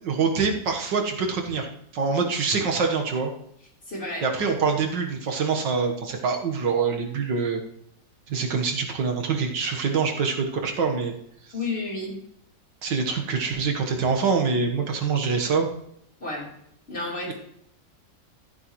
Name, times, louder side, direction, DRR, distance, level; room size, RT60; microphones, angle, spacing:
voice 1, 0.0-1.7 1.9-3.3 4.2-7.6 8.3-11.1 12.8-15.7 17.3-17.4, right 5 dB, 85° right, 2 dB, 2.1 m, -25 dB
voice 2, 3.9-4.2 11.5-12.2 16.2-16.5 16.9-17.3, left 2 dB, 35° left, -4 dB, 3.9 m, -31 dB
15.0 x 9.9 x 3.1 m, 0.72 s
omnidirectional pair, 1.9 m